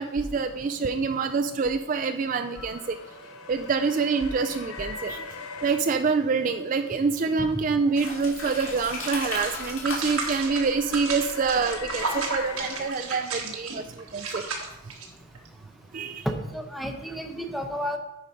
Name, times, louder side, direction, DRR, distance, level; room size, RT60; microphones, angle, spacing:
voice 1, 0.0-3.0 3.5-5.2 5.6-14.5 15.9-16.3, right 4 dB, 40° right, 7 dB, 0.3 m, -26 dB
sound 1, 2.5-5.8 8.2-13.7, left 3 dB, 90° left, 0.7 m, -41 dB
sound 2, 7.9-12.6, left 2 dB, 70° left, 2.6 m, -37 dB
sound 3, 8.6-8.7 9.1-15.5, right 4 dB, 85° right, 1.5 m, -33 dB
voice 2, 16.3-18.0, equal, ahead, 3 dB, 0.7 m, -31 dB
9.8 x 4.8 x 5.2 m, 0.97 s
head